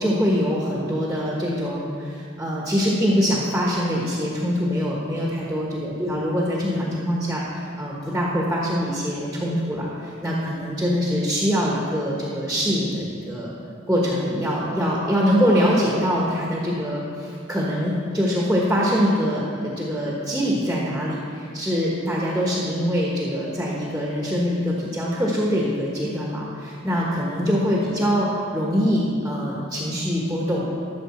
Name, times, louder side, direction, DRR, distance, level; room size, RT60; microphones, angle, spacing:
voice 1, 0.0-13.5 13.9-30.7, equal, 5° right, -4 dB, 1.1 m, -24 dB
12.5 x 6.8 x 4.3 m, 2.3 s
head